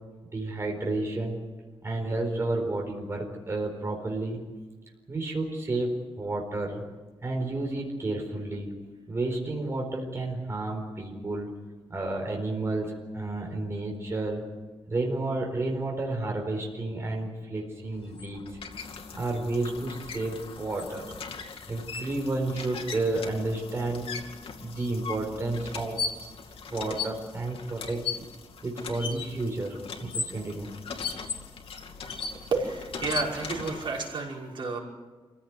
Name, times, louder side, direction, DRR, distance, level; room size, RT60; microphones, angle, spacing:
voice 1, 0.3-1.4 1.8-4.4 5.1-6.8 7.2-8.7 9.1-11.5 11.9-14.4 14.9-18.6 19.1-21.1 21.7-24.1 24.6-26.0 26.7-28.2 28.6-30.7, right 2 dB, 30° right, 0 dB, 4.4 m, -31 dB
sound 1, 17.9-34.2, left 5 dB, 85° left, 2.4 m, -38 dB
voice 2, 32.5-34.8, right 4 dB, 65° right, -1 dB, 5.4 m, -31 dB
28.0 x 16.0 x 9.5 m, 1.3 s
wide cardioid pair, 165°, 9 cm